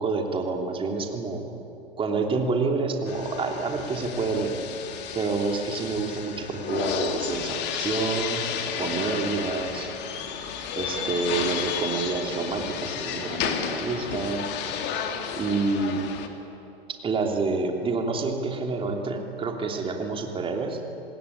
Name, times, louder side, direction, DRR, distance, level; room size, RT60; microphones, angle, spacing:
voice 1, 0.0-1.5 2.0-4.5 5.1-8.5 8.8-9.9 10.8-14.8 15.4-16.0 16.9-20.8, right 4 dB, 15° right, 2 dB, 3.0 m, -28 dB
sound 1, 3.1-16.3, left 7 dB, 35° left, 2.5 m, -32 dB
26.5 x 20.0 x 9.9 m, 3.0 s
figure-of-eight pair, 105°, 32 cm